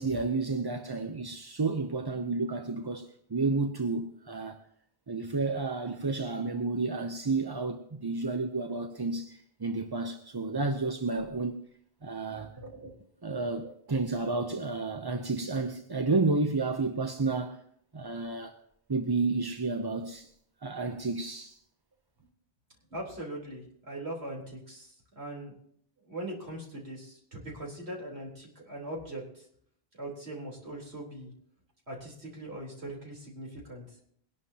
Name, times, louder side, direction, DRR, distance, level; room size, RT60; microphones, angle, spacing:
voice 1, 0.0-4.6 5.1-11.6 12.0-12.5 13.2-17.6 17.9-18.6 18.9-20.3 20.6-21.6, right 3 dB, 25° right, 0.6 m, -31 dB
voice 2, 12.3-12.9 13.6-13.7 22.9-25.6 26.0-29.5 30.0-31.3 31.9-34.0, right 1 dB, 75° right, 4.1 m, -41 dB
22.0 x 11.5 x 2.9 m
omnidirectional pair, 1.1 m